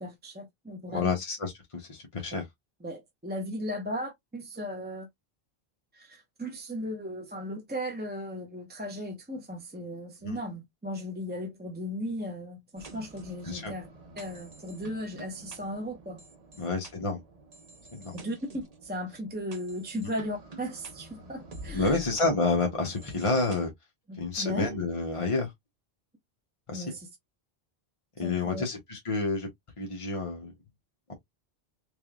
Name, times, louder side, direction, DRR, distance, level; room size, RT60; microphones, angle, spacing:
voice 1, 0.0-1.2 2.8-5.1 5.9-13.9 14.2-16.2 16.5-16.7 18.1-22.0 24.1-24.8 26.7-27.1 28.2-28.6, equal, 10° right, 0.8 m, -36 dB
voice 2, 0.9-2.5 10.2-10.4 13.4-13.7 16.6-17.2 17.9-18.1 20.0-20.1 21.7-23.7 24.2-25.5 26.7-26.9 28.2-29.5 29.8-30.5, left 3 dB, 35° left, 0.8 m, -29 dB
sound 1, 12.8-23.6, right 1 dB, 40° right, 1.0 m, -48 dB
3.9 x 3.3 x 2.3 m
omnidirectional pair, 1.1 m